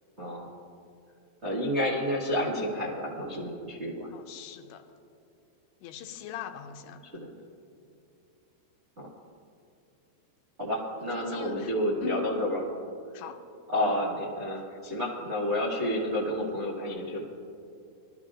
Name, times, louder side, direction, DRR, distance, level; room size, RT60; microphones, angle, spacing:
voice 1, 0.2-0.5 1.4-4.1 7.0-7.3 9.0-9.1 10.6-12.6 13.7-17.3, left 1 dB, 75° right, -6 dB, 0.6 m, -30 dB
voice 2, 4.1-4.8 5.8-7.0 11.1-11.7 12.0-12.4 13.1-13.4 14.7-14.8, left 9 dB, 85° left, 5 dB, 2.6 m, -41 dB
22.5 x 13.5 x 2.5 m, 2.6 s
omnidirectional pair, 4.9 m